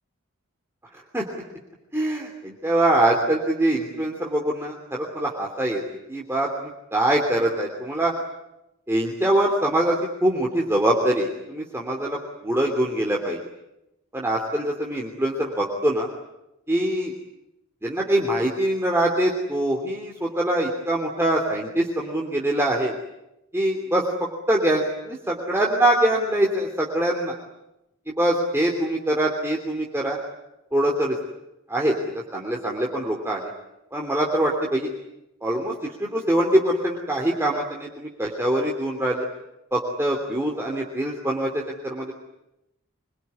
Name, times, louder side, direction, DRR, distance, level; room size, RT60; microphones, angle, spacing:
voice 1, 0.9-1.4 1.9-5.8 6.1-8.1 8.9-13.4 14.1-16.1 16.7-17.1 17.8-22.9 23.5-24.0 24.5-27.3 28.1-30.2 30.7-31.2 31.7-33.5 33.9-34.9 35.4-39.3 39.7-42.1, right 1 dB, 10° right, -1 dB, 3.0 m, -24 dB
26.0 x 22.5 x 9.8 m, 0.89 s
head